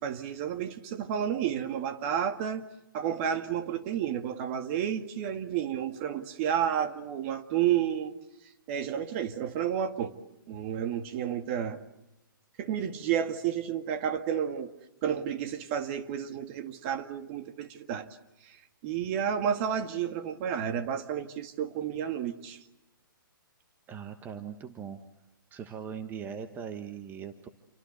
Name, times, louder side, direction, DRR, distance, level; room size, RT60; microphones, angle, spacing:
voice 1, 0.0-2.6 2.9-8.1 8.7-10.1 10.5-11.8 12.6-14.7 15.0-18.1 18.4-18.6 18.8-22.6, right 9 dB, 35° right, 8 dB, 1.9 m, -31 dB
voice 2, 23.9-25.0 25.5-27.5, right 7 dB, 15° right, 8 dB, 1.3 m, -40 dB
28.0 x 24.5 x 8.1 m, 0.89 s
hypercardioid pair, 140°, 12 cm